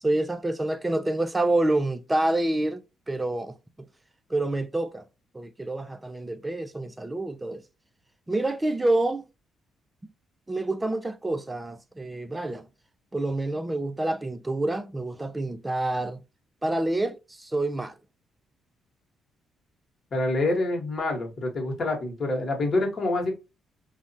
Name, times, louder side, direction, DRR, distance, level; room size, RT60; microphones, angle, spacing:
voice 1, 0.0-3.9 4.3-5.1 5.3-7.6 8.3-9.3 10.0-10.1 10.5-12.7 13.1-16.2 16.6-18.0, right 2 dB, 15° right, 0.3 m, -27 dB
voice 2, 20.1-23.3, left 2 dB, 45° left, 1.0 m, -26 dB
3.2 x 2.0 x 2.6 m
cardioid pair, 90°, 0 cm